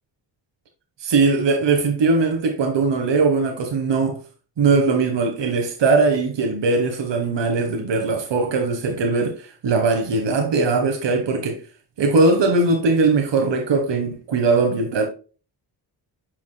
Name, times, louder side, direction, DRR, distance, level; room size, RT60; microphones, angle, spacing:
voice 1, 1.0-4.2 4.6-11.6 12.0-15.1, right 3 dB, 70° right, 1.5 m, -20 dB
7.3 x 5.8 x 2.3 m
cardioid pair, 65°, 44 cm